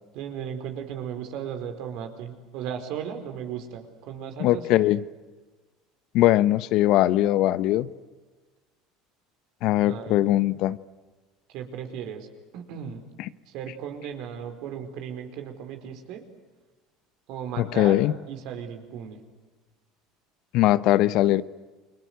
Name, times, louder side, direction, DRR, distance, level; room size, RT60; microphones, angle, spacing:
voice 1, 0.1-4.8 9.8-10.2 11.5-12.3 12.5-13.0 13.5-16.2 17.3-18.0 18.3-19.2, right 8 dB, 65° right, 6 dB, 4.7 m, -36 dB
voice 2, 4.4-5.0 6.1-7.9 9.6-10.8 13.2-13.3 17.6-18.1 20.5-21.4, left 15 dB, 65° left, 17 dB, 0.9 m, -21 dB
29.5 x 22.0 x 8.1 m, 1.3 s
hypercardioid pair, 80°, 0 cm